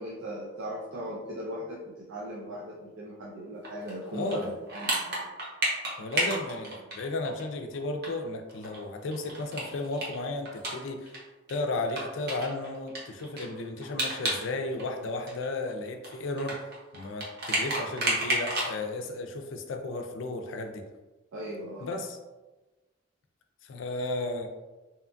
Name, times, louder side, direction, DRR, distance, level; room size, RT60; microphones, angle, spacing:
voice 1, 0.0-5.2 21.3-21.9, equal, 85° right, -5 dB, 0.5 m, -38 dB
sound 1, 3.6-7.4 7.7-7.8 8.0-8.1 8.5-11.2 11.5-11.6 12.0-14.5 14.7-18.7, right 1 dB, 60° right, 0.8 m, -31 dB
voice 2, 4.1-4.5 6.0-11.2 11.5-16.6 16.9-20.9 21.8-22.2 23.6-24.5, left 2 dB, 80° left, 4 dB, 0.4 m, -34 dB
2.8 x 2.2 x 2.5 m, 1.1 s
head